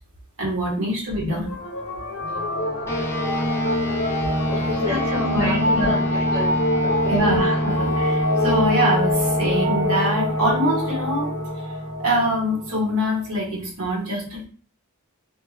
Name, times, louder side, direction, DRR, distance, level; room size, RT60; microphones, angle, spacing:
voice 1, 0.4-1.5 4.6-5.0 5.3-6.0 7.1-11.3 12.0-14.4, equal, 70° right, -2 dB, 1.1 m, -24 dB
sound 1, 1.4-13.3, left 1 dB, 65° left, 0.7 m, -26 dB
voice 2, 2.2-3.0 4.5-7.2, left 2 dB, 55° right, -5 dB, 0.6 m, -31 dB
sound 2, 2.9-12.6, equal, 10° left, 0.4 m, -27 dB
2.2 x 2.1 x 3.0 m, 0.41 s
head